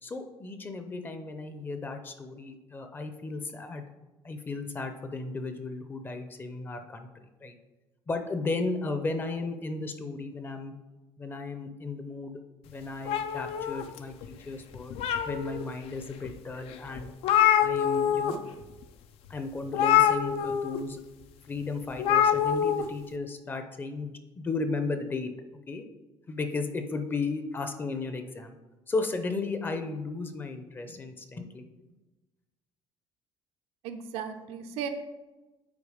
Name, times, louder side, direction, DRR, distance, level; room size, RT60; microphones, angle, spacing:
voice 1, 0.0-3.9 4.2-7.1 7.4-7.6 8.1-10.7 11.2-12.4 12.6-15.0 15.2-17.1 17.6-18.4 19.3-21.0 21.5-25.3 25.7-25.8 26.3-28.6 28.9-31.7, left 3 dB, 20° left, 7 dB, 0.6 m, -34 dB
sound 1, 13.1-14.3 14.7-15.6 16.2-16.3 16.7-16.8 17.0-18.3 18.6-18.8 19.7-20.8 22.0-22.8, left 9 dB, 75° left, 0.5 m, -25 dB
voice 2, 33.8-34.9, right 7 dB, 90° right, 7 dB, 0.8 m, -36 dB
8.4 x 4.4 x 4.9 m, 1.1 s
cardioid pair, 160°, 10 cm